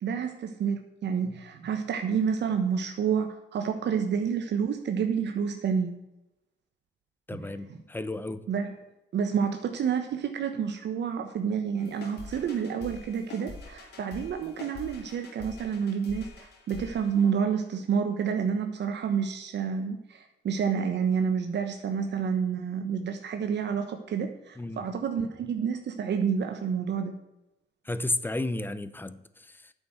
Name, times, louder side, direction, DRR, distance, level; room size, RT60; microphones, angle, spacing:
voice 1, 0.0-5.9 7.3-7.5 8.5-8.7 9.1-27.1, right 7 dB, 60° right, 5 dB, 1.2 m, -29 dB
voice 2, 7.3-8.4 24.6-24.9 27.8-29.7, left 2 dB, 10° left, 13 dB, 0.8 m, -33 dB
sound 1, 11.8-17.6, left 3 dB, 55° left, 3.0 m, -45 dB
9.3 x 6.6 x 7.7 m, 0.91 s
cardioid pair, 90°, 20 cm